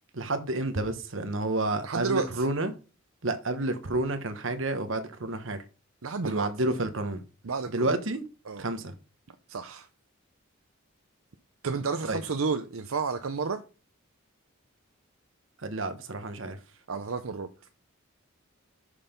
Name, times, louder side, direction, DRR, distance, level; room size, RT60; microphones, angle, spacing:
voice 1, 0.1-2.7 3.2-5.6 6.2-7.2 7.7-8.2 8.6-8.9 12.0-12.2 15.6-16.6, right 2 dB, 65° right, 1.1 m, -30 dB
voice 2, 1.8-2.5 6.0-6.5 7.4-7.9 8.5-8.6 9.5-9.9 11.6-13.6 16.9-17.5, right 4 dB, 80° right, 0.7 m, -31 dB
6.6 x 5.6 x 5.2 m
head